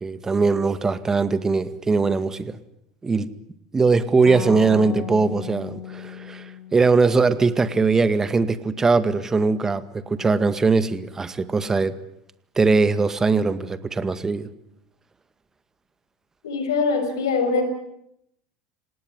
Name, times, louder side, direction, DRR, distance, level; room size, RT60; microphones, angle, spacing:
voice 1, 0.0-2.6 3.0-3.3 3.7-12.0 12.6-14.5, right 4 dB, 20° right, 2.0 m, -21 dB
sound 1, 4.3-7.8, left 8 dB, 45° left, 7.7 m, -36 dB
voice 2, 16.4-17.6, left 4 dB, 80° left, 6.2 m, -22 dB
27.5 x 18.5 x 9.7 m
hypercardioid pair, 80°, 2 cm